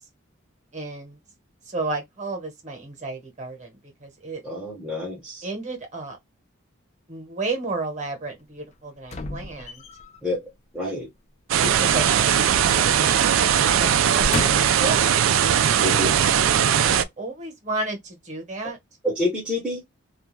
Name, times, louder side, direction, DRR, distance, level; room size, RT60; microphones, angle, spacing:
voice 1, 0.7-1.2 1.7-3.8 4.0-4.4 5.4-6.2 7.1-9.8 11.6-15.1 16.0-18.8, right 2 dB, 35° right, 1.0 m, -33 dB
voice 2, 4.4-5.4 10.2-10.4 10.7-11.1 15.8-16.1 19.0-19.8, left 2 dB, 5° right, 0.7 m, -27 dB
sound 1, 9.0-10.2 11.7-12.9 13.2-13.4 14.0-14.9 15.6-15.7, left 2 dB, 30° left, 0.3 m, -33 dB
sound 2, 11.5-17.0, right 9 dB, 70° right, 0.3 m, -19 dB
2.3 x 2.2 x 3.0 m
head